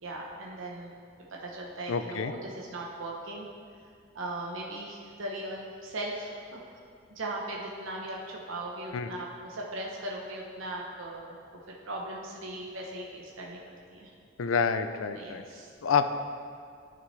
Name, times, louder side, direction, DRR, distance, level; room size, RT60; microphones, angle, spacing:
voice 1, 0.0-0.9 1.3-3.5 4.1-6.6 7.1-11.3 11.7-13.6 13.9-14.1 15.1-15.7, right 1 dB, 85° right, -2 dB, 0.9 m, -38 dB
voice 2, 1.9-2.3 8.9-9.1 14.4-15.4 15.8-16.1, left 6 dB, 90° left, 10 dB, 0.5 m, -27 dB
11.0 x 6.0 x 3.2 m, 2.2 s
head